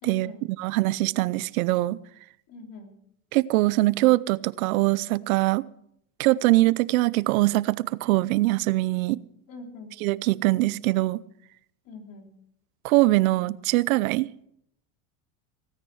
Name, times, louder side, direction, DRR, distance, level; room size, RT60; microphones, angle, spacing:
voice 1, 0.0-0.5 2.5-3.0 9.5-9.9 11.8-12.3, left 2 dB, 50° left, 3.7 m, -43 dB
voice 2, 0.6-2.0 3.3-5.6 6.2-9.2 10.0-11.2 12.8-14.3, right 19 dB, 85° right, 0.7 m, -22 dB
17.0 x 9.8 x 6.2 m
supercardioid pair, 120°, 41 cm